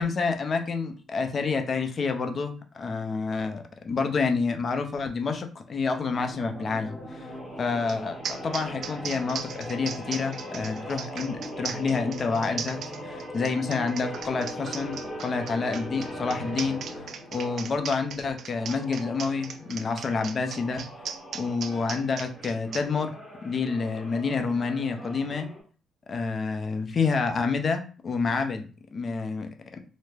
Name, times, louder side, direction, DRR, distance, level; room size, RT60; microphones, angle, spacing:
voice 1, 0.0-7.3 7.6-16.8 17.3-20.8 21.3-23.1 23.4-25.5 26.1-29.8, left 4 dB, 45° left, 6 dB, 0.5 m, -28 dB
sound 1, 6.1-17.8 18.5-25.6, equal, ahead, 1.2 m, -40 dB
sound 2, 7.9-8.0 8.2-22.8, right 7 dB, 65° right, 0.3 m, -37 dB
3.3 x 2.1 x 3.3 m, 0.38 s
cardioid pair, 90°, 0 cm